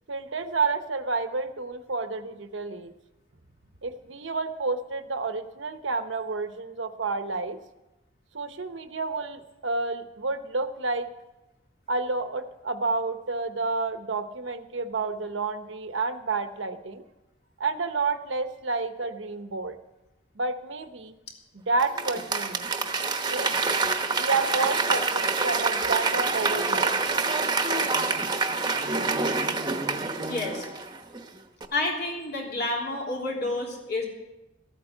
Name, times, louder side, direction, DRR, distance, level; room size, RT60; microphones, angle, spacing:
voice 1, 0.1-2.9 3.8-7.6 8.3-11.1 11.9-17.0 17.6-19.7 20.4-21.1 21.5-22.7 23.3-23.8 24.1-26.9, right 3 dB, 75° right, 10 dB, 0.9 m, -30 dB
Applause / Crowd, 21.8-31.2 31.6-31.7, right 4 dB, 25° right, 1.0 m, -26 dB
voice 2, 30.3-30.7 31.7-34.1, left 2 dB, 55° left, -1 dB, 3.4 m, -29 dB
14.0 x 9.0 x 7.8 m, 1.0 s
head